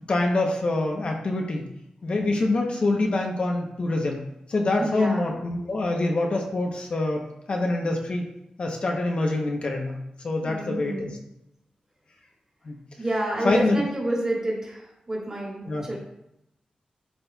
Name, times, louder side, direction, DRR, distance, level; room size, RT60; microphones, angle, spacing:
voice 1, 0.1-1.7 2.0-4.2 4.5-7.2 7.5-8.2 8.6-10.0 10.2-11.1 12.6-12.8 13.4-13.8 15.7-15.9, left 2 dB, 45° left, 1 dB, 0.8 m, -25 dB
voice 2, 4.8-5.4 10.4-11.1 13.0-16.0, right 1 dB, 25° right, -4 dB, 2.5 m, -29 dB
12.0 x 4.1 x 2.3 m, 0.85 s
wide cardioid pair, 150°, 3 cm